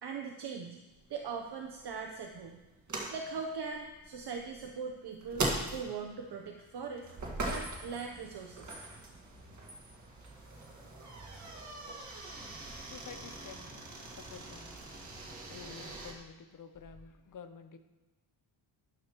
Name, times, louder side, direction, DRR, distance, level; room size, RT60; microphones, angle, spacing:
voice 1, 0.0-0.8 1.1-2.6 3.1-7.1 7.4-8.8, right 5 dB, 55° right, 3 dB, 0.8 m, -40 dB
sound 1, 0.9-16.1, right 2 dB, 35° right, 1.7 m, -42 dB
sound 2, 6.8-7.4 7.6-8.2 8.5-9.0 9.3-9.8 10.1-11.7 12.3-13.9 14.2-16.3 16.7-17.0, equal, 15° left, 2.2 m, -59 dB
voice 2, 12.8-14.7 15.4-17.8, left 6 dB, 40° left, 9 dB, 0.7 m, -50 dB
12.0 x 11.0 x 3.0 m, 1.1 s
wide cardioid pair, 170°, 48 cm